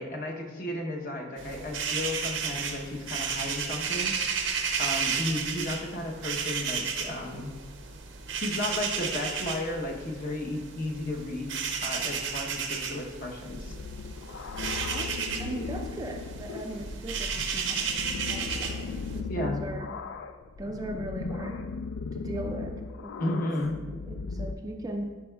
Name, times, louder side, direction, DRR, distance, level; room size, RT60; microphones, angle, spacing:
voice 1, 0.0-4.1 4.8-7.5 8.4-13.7 19.3-19.6 23.2-23.7, left 1 dB, 45° left, 0 dB, 0.8 m, -33 dB
sound 1, 1.4-19.2, right 6 dB, 75° right, 0.6 m, -33 dB
sound 2, 13.5-24.5, left 4 dB, 75° left, 0.3 m, -37 dB
voice 2, 14.9-17.8 18.1-19.9 20.6-21.6 22.1-23.4 23.8-25.2, right 1 dB, 20° right, 3 dB, 0.3 m, -38 dB
10.0 x 4.7 x 2.2 m, 1.4 s
head